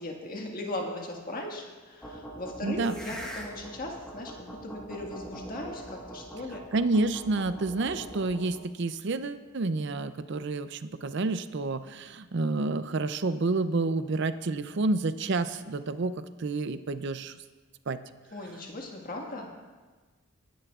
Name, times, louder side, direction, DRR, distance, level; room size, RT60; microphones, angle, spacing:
voice 1, 0.0-6.6 18.3-19.5, left 1 dB, 40° left, 0 dB, 1.7 m, -38 dB
sound 1, 2.0-8.6, right 1 dB, 5° left, 1.4 m, -43 dB
voice 2, 2.6-2.9 6.7-17.3 17.9-18.0, right 3 dB, 55° right, 12 dB, 0.5 m, -29 dB
23.0 x 10.0 x 2.4 m, 1.3 s
head